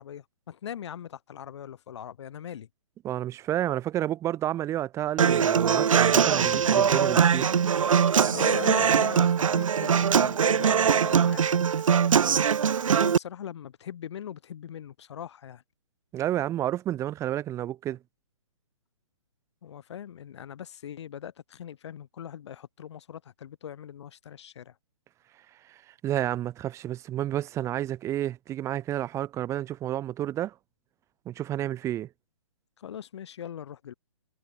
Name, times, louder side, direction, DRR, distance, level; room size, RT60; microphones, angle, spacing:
voice 1, 0.0-2.7 8.3-11.6 12.9-15.6 19.6-24.7 32.8-33.9, left 9 dB, 55° left, 5.9 m, -41 dB
voice 2, 3.0-7.5 16.1-18.0 25.7-30.5 31.2-32.1, right 12 dB, 15° right, 1.3 m, -30 dB
Human voice / Acoustic guitar, 5.2-13.2, right 7 dB, 70° right, 0.7 m, -22 dB
hypercardioid pair, 135°, 17 cm